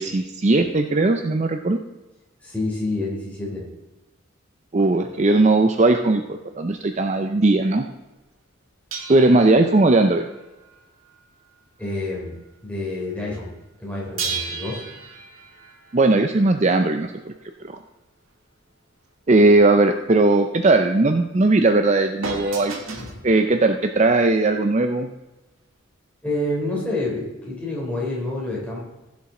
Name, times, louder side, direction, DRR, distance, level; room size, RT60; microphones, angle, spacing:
voice 1, 0.0-1.8 4.7-7.8 9.1-10.3 15.9-17.3 19.3-23.0 23.2-25.1, right 2 dB, 35° right, 6 dB, 0.5 m, -18 dB
voice 2, 2.4-3.6 5.0-5.2 11.8-12.3 12.6-13.5 13.8-14.8 23.0-23.1 26.2-28.8, left 2 dB, 5° left, -5 dB, 3.3 m, -28 dB
sound 1, 8.9-12.0 12.3-12.6 14.2-16.9 22.2-23.2 24.2-24.3, right 5 dB, 75° right, 1.8 m, -35 dB
15.5 x 7.2 x 3.8 m, 1.1 s
head